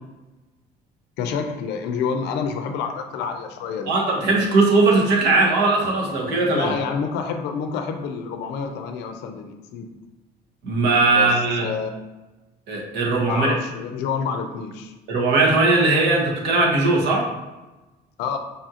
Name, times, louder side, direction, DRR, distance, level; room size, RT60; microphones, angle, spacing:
voice 1, 1.2-3.9 6.5-9.9 11.1-11.3 11.6-11.9 13.3-14.9 18.2-18.4, left 6 dB, 85° left, 5 dB, 0.4 m, -28 dB
voice 2, 3.9-6.7 10.6-11.7 12.7-13.5 15.1-17.3, right 3 dB, 85° right, -1 dB, 1.0 m, -19 dB
5.2 x 2.4 x 2.7 m, 1.1 s
cardioid pair, 110°, 17 cm